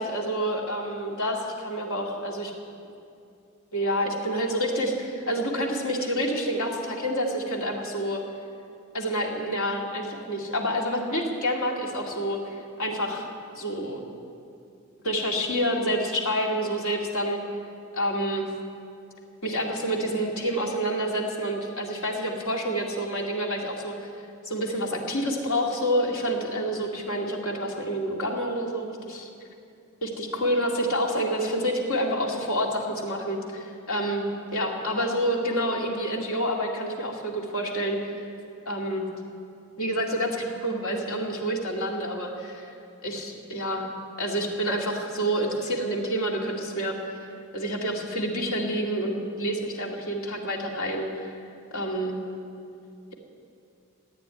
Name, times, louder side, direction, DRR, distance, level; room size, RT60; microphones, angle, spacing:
voice 1, 0.0-2.5 3.7-8.2 8.9-13.3 13.5-14.0 15.0-17.4 17.9-18.5 19.4-24.1 24.4-29.3 30.0-38.2 38.7-39.1 39.8-42.7 43.0-43.8 44.2-47.0 47.5-51.3 51.7-52.1, equal, 85° left, 0 dB, 2.5 m, -28 dB
15.5 x 9.5 x 9.6 m, 2.6 s
head